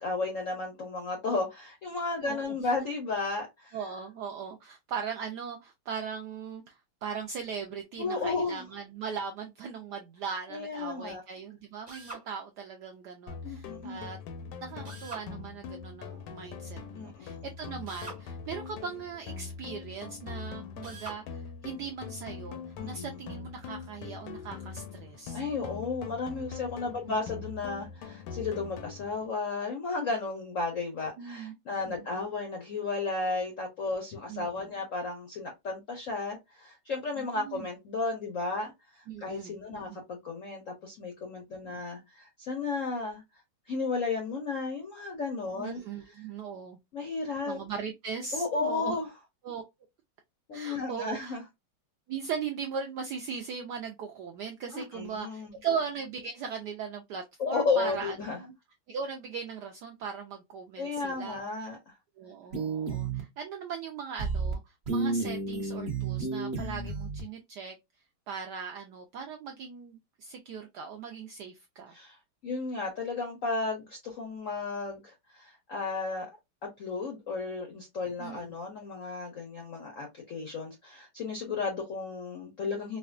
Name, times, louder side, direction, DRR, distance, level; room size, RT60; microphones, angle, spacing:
voice 1, 0.0-3.8 8.0-8.6 10.5-11.2 13.4-14.1 16.9-17.5 22.8-23.2 25.3-43.2 43.7-45.8 46.9-47.6 48.3-49.1 50.5-51.4 54.7-55.6 57.4-58.4 60.8-61.9 71.9-72.2 72.4-76.4 76.8-83.0, left 3 dB, 70° left, 0.7 m, -33 dB
voice 2, 2.2-2.7 3.7-14.2 14.6-25.4 27.1-27.2 31.2-31.5 31.8-32.2 34.3-34.7 37.2-37.7 39.1-40.0 41.6-41.8 45.6-46.8 47.5-48.9 49.4-49.6 50.5-51.3 52.1-58.5 58.9-61.4 62.2-67.8 68.3-72.0 78.2-78.5, right 6 dB, 80° right, 0.9 m, -39 dB
Drill, 11.9-12.3 14.8-15.3 17.9-18.2 20.8-21.2, right 3 dB, 60° right, 0.4 m, -43 dB
sound 1, 13.3-29.3, left 5 dB, 90° left, 1.6 m, -43 dB
sound 2, 62.5-63.2 64.2-64.5 64.9-67.2, right 4 dB, 45° right, 0.9 m, -31 dB
4.7 x 2.2 x 2.4 m
omnidirectional pair, 2.3 m